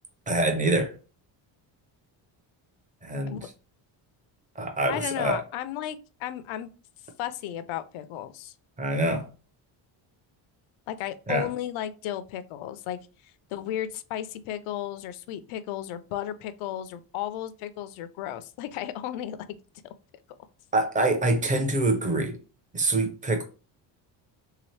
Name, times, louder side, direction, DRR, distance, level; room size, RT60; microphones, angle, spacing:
voice 1, 0.3-0.9 3.0-3.5 4.6-5.4 8.8-9.2 11.3-11.5 20.7-22.4 22.7-23.4, right 2 dB, 15° right, 0.5 m, -25 dB
voice 2, 4.9-6.7 7.2-8.5 10.9-13.0 13.5-19.6 19.8-19.9, left 11 dB, 80° left, 0.6 m, -34 dB
3.4 x 2.9 x 3.1 m
cardioid pair, 170°, 48 cm